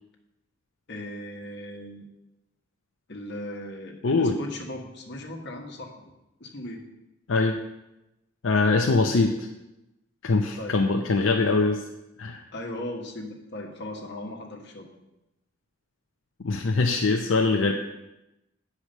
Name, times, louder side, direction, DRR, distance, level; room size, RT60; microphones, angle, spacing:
voice 1, 0.9-2.0 3.1-5.9 6.4-6.8 10.6-10.8 12.5-14.9, left 1 dB, 60° left, 1 dB, 1.5 m, -37 dB
voice 2, 4.0-4.4 7.3-7.6 8.4-9.5 10.2-11.8 12.2-12.4 16.4-17.7, left 3 dB, 80° left, 3 dB, 0.6 m, -22 dB
8.6 x 4.9 x 6.6 m, 0.92 s
head